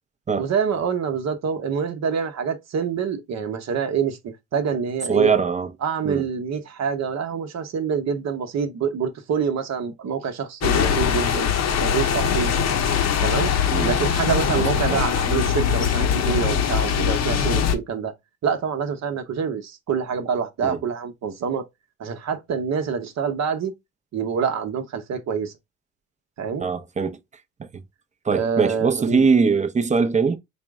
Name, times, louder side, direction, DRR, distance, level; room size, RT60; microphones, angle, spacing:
voice 1, 0.4-5.3 5.8-11.5 11.8-12.6 13.2-13.5 13.8-18.1 18.4-21.7 22.0-23.7 24.1-25.5 26.4-26.7 28.3-29.3, right 6 dB, 60° right, 0.8 m, -26 dB
voice 2, 5.1-5.7 6.0-6.3 13.7-13.9 14.5-15.0 20.6-20.8 26.6-27.2 28.3-30.4, right 5 dB, 25° right, 0.5 m, -21 dB
sound 1, 10.6-17.8, left 8 dB, 60° left, 0.7 m, -22 dB
4.2 x 2.0 x 3.5 m
cardioid pair, 90°, 30 cm